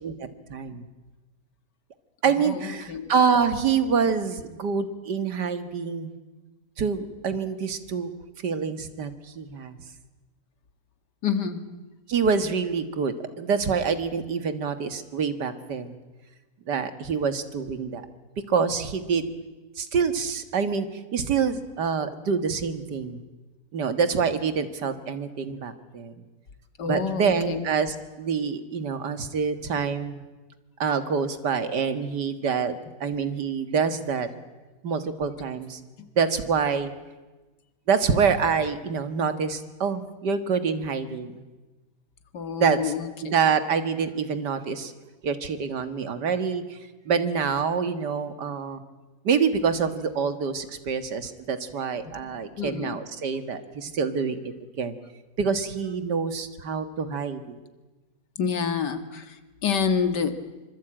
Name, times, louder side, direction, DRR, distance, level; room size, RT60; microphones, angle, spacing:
voice 1, 0.0-0.9 2.2-6.1 6.8-8.1 8.4-9.8 12.1-15.9 16.7-18.1 18.5-19.3 19.8-23.2 23.7-26.1 26.9-30.2 30.8-34.3 34.8-35.8 36.2-36.9 37.9-41.4 42.6-42.9 43.2-44.9 45.2-46.8 47.1-48.8 49.2-55.0 55.4-57.6, right 6 dB, 80° right, 10 dB, 2.2 m, -26 dB
voice 2, 2.3-3.1 11.2-11.6 26.8-27.7 42.3-43.1 52.1-52.2 52.6-53.0 53.9-54.0 58.4-60.4, left 6 dB, 80° left, 9 dB, 2.4 m, -28 dB
25.5 x 25.5 x 8.9 m, 1.2 s
omnidirectional pair, 1.8 m